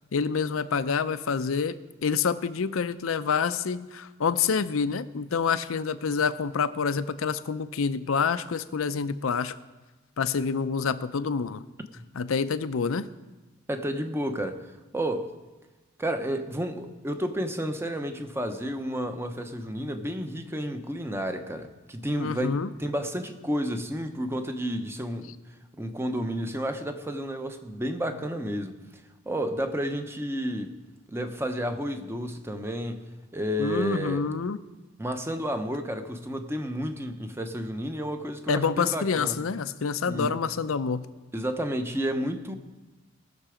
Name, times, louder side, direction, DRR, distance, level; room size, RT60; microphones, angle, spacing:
voice 1, 0.1-9.5 10.2-11.7 12.2-13.1 22.2-22.7 33.6-34.6 38.5-41.1, left 5 dB, 90° left, 0.5 m, -27 dB
voice 2, 13.7-14.7 14.9-15.3 16.0-25.4 25.8-28.8 29.3-30.8 31.1-34.2 35.0-39.4 40.1-40.4 41.3-42.5, equal, 10° right, 0.8 m, -31 dB
19.0 x 6.8 x 5.0 m
head